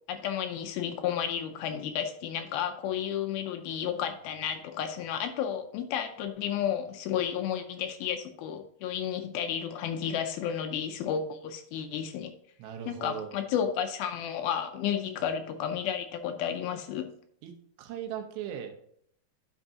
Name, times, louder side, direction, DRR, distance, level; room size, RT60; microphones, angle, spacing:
voice 1, 0.1-12.3 12.9-17.1, left 9 dB, 80° left, 6 dB, 2.2 m, -32 dB
voice 2, 12.6-13.3 15.2-15.3 17.4-18.8, right 9 dB, 85° right, 5 dB, 3.2 m, -39 dB
9.8 x 6.3 x 2.8 m, 0.68 s
omnidirectional pair, 4.8 m